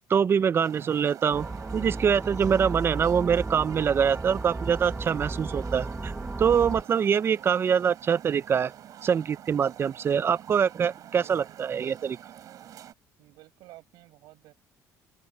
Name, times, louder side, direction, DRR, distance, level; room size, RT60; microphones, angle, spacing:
voice 1, 0.1-1.5 1.7-6.1 6.4-8.7 9.0-12.2, right 7 dB, 35° right, 0.5 m, -24 dB
sound 1, 0.6-12.9, right 11 dB, 55° right, 4.8 m, -47 dB
sound 2, 1.3-6.8, right 3 dB, 15° right, 1.5 m, -34 dB
voice 2, 11.0-11.6 13.2-14.5, right 18 dB, 80° right, 5.9 m, -53 dB
open air
cardioid pair, 125°, 7 cm